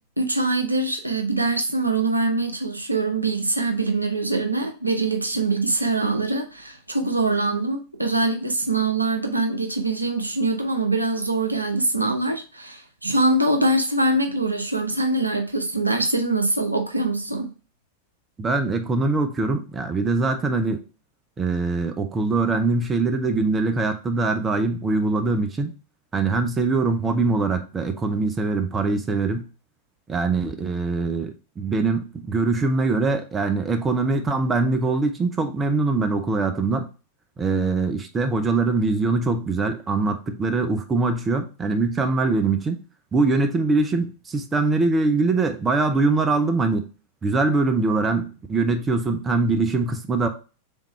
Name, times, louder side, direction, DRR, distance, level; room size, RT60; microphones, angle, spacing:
voice 1, 0.2-17.5, right 2 dB, 85° right, 4 dB, 0.7 m, -23 dB
voice 2, 18.4-20.8 21.4-25.7 26.1-29.5 30.1-36.9 37.4-42.8 43.1-46.9 47.2-50.3, right 3 dB, 20° right, 6 dB, 0.6 m, -23 dB
3.6 x 3.6 x 4.1 m, 0.34 s
figure-of-eight pair, 90°, 0 cm